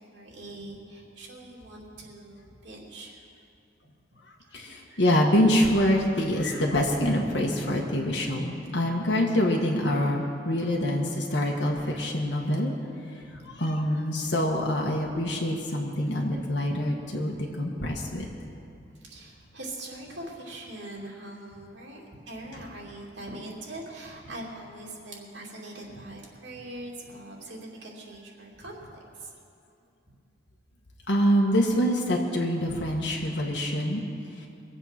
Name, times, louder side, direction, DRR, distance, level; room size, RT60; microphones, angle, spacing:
voice 1, 0.1-3.2 4.4-5.0 13.3-13.5 19.0-29.3, right 1 dB, 75° right, -3 dB, 2.8 m, -42 dB
voice 2, 4.5-12.7 13.6-18.2 31.1-34.0 34.4-34.5, equal, 70° left, -1 dB, 1.5 m, -25 dB
23.0 x 8.0 x 5.9 m, 2.4 s
head